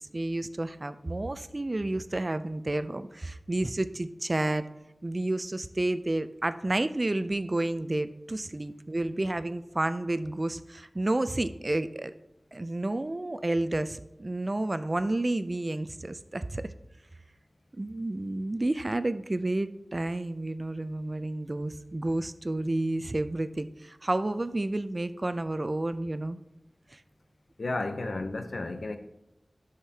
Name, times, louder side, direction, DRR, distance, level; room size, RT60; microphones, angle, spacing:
voice 1, 0.0-4.6 5.0-12.1 12.5-16.7 17.8-26.4 26.9-27.0, right 2 dB, 40° right, 0.4 m, -30 dB
voice 2, 27.6-29.0, left 2 dB, 85° left, 0.7 m, -32 dB
11.0 x 6.5 x 2.8 m
wide cardioid pair, 65°, 0 cm